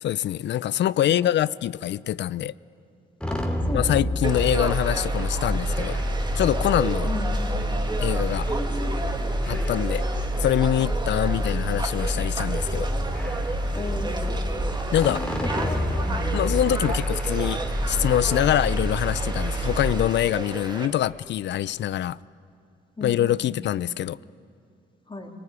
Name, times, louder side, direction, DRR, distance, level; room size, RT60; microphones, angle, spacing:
voice 1, 0.0-2.5 3.7-6.0 6.3-7.1 8.0-8.5 9.5-10.0 10.4-12.9 14.9-15.2 16.3-17.6 17.9-22.2 23.0-24.2, left 12 dB, 65° left, 0.5 m, -24 dB
sound 1, 3.2-20.1, equal, 5° left, 2.8 m, -27 dB
voice 2, 3.3-3.9 7.0-7.5 8.5-9.0 9.5-9.6 11.2-11.7 13.7-14.3 15.1-16.4 23.0-23.4 25.1-25.3, left 2 dB, 25° left, 3.5 m, -35 dB
Conversation / Crowd, 4.2-20.9, right 2 dB, 20° right, 2.4 m, -34 dB
24.0 x 19.0 x 9.8 m
cardioid pair, 90°, 20 cm